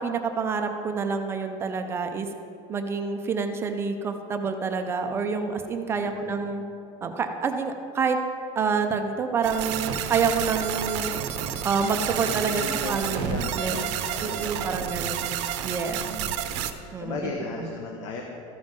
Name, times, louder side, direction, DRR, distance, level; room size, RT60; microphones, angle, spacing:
voice 1, 0.0-2.3 2.7-6.6 7.0-8.2 8.6-11.1 11.6-13.8 14.2-15.3 15.6-16.0 16.9-17.3 17.6-17.7, right 5 dB, 15° right, 6 dB, 0.4 m, -28 dB
voice 2, 5.9-6.4 12.2-14.9 15.9-16.5 17.0-18.2, left 3 dB, 65° left, 0 dB, 1.1 m, -36 dB
sound 1, 9.4-16.7, right 10 dB, 60° right, 0.6 m, -30 dB
14.0 x 5.3 x 5.2 m, 2.6 s
cardioid pair, 180°, 17 cm